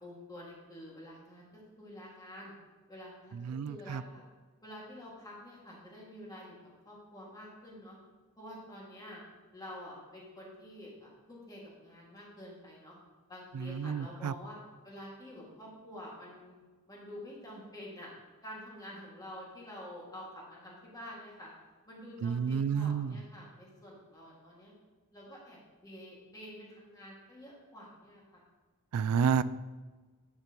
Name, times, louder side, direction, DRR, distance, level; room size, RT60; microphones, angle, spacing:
voice 1, 0.0-2.5 2.9-4.2 4.6-6.5 6.8-7.9 8.4-9.2 9.5-12.9 13.3-14.6 14.8-16.6 16.9-18.1 18.4-21.5 21.9-24.7 25.1-28.4, left 1 dB, 15° left, -5 dB, 2.0 m, -48 dB
voice 2, 3.3-4.0 13.5-14.3 22.2-23.2 28.9-29.4, right 7 dB, 85° right, 17 dB, 0.3 m, -30 dB
11.0 x 6.7 x 3.0 m, 1.3 s
head